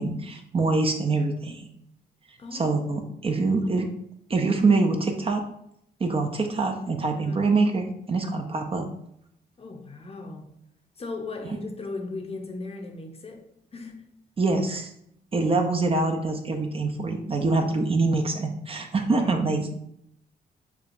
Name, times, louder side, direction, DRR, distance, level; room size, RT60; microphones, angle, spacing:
voice 1, 0.0-1.7 2.5-3.9 4.3-5.4 6.0-8.9 14.4-14.9 15.3-19.7, right 3 dB, 30° right, 4 dB, 0.4 m, -24 dB
voice 2, 2.4-2.8 7.2-7.4 9.6-10.5 11.0-13.4 13.7-14.1 19.0-19.7, left 3 dB, 35° left, 3 dB, 0.6 m, -38 dB
4.5 x 2.2 x 2.5 m, 0.74 s
cardioid pair, 80°, 18 cm